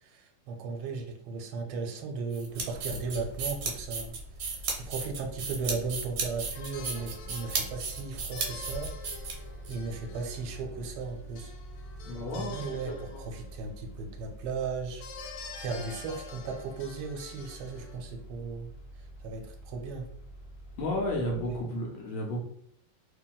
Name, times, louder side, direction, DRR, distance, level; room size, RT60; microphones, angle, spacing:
voice 1, 0.0-4.2 4.7-8.9 9.7-11.5 12.1-15.0 15.6-18.7 19.2-20.1 21.4-21.7, right 4 dB, 90° right, 3 dB, 1.4 m, -36 dB
sound 1, 2.3-9.7, right 4 dB, 65° right, 1.0 m, -35 dB
Old Metal Table Fan, 2.9-21.6, right 1 dB, 45° right, 0.9 m, -46 dB
sound 2, 6.5-13.9 15.0-18.0, left 4 dB, 90° left, 1.4 m, -47 dB
voice 2, 12.0-12.7 13.1-13.2 20.8-22.4, left 1 dB, 70° left, 0 dB, 1.3 m, -32 dB
3.0 x 2.7 x 2.2 m, 0.69 s
omnidirectional pair, 2.2 m